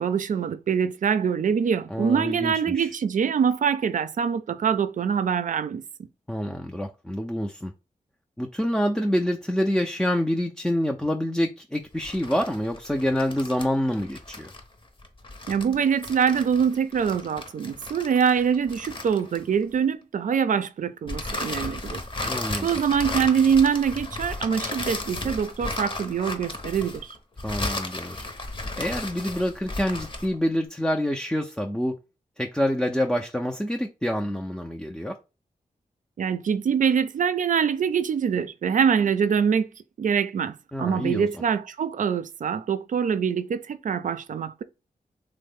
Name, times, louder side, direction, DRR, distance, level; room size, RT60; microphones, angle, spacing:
voice 1, 0.0-5.8 15.5-22.0 22.6-27.2 36.2-39.7 40.0-44.6, right 7 dB, 65° right, 0.4 m, -24 dB
voice 2, 1.9-2.9 6.3-7.7 8.4-14.5 22.2-22.7 27.4-28.2 28.8-32.0 32.4-35.2 40.7-41.4, equal, 5° left, 0.4 m, -27 dB
sound 1, 11.9-19.7 21.1-30.4, left 2 dB, 35° left, 0.8 m, -34 dB
3.1 x 2.0 x 3.5 m
cardioid pair, 55°, 15 cm